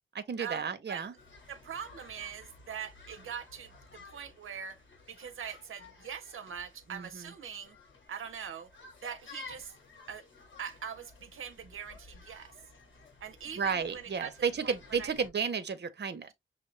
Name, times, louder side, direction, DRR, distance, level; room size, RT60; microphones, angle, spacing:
voice 1, 0.1-1.1 6.9-7.2 13.6-16.3, right 6 dB, 55° right, 0.8 m, -33 dB
sound 1, 1.2-15.3, left 3 dB, 70° left, 3.0 m, -54 dB
voice 2, 1.5-4.8 5.1-7.8 8.1-8.7 9.0-9.7 10.1-10.3 10.6-12.5 13.2-15.1, right 7 dB, 90° right, 0.6 m, -42 dB
6.4 x 2.5 x 3.1 m
wide cardioid pair, 145°, 21 cm